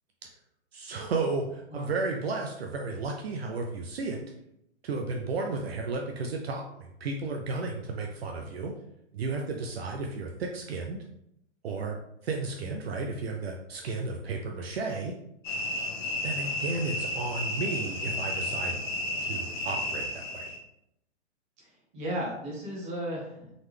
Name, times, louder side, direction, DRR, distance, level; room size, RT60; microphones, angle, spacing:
voice 1, 0.7-4.2 4.8-8.7 9.1-11.0 11.6-12.0 12.2-15.1 16.2-18.8 19.3-20.5, right 3 dB, 55° right, 1 dB, 0.6 m, -33 dB
sound 1, 15.4-20.6, left 1 dB, 40° left, 1.4 m, -32 dB
voice 2, 21.6-23.5, right 1 dB, 20° right, -5 dB, 1.0 m, -35 dB
4.0 x 3.2 x 3.2 m, 0.79 s
hypercardioid pair, 165°, 36 cm